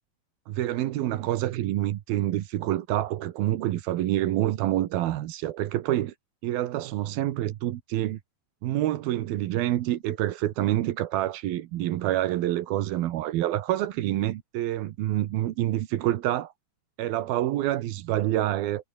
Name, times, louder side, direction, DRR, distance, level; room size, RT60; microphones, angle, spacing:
voice 1, 0.5-6.1 6.4-8.2 8.6-16.5 17.0-18.9, right 14 dB, 80° right, 3.0 m, -27 dB
omnidirectional pair, 4.3 m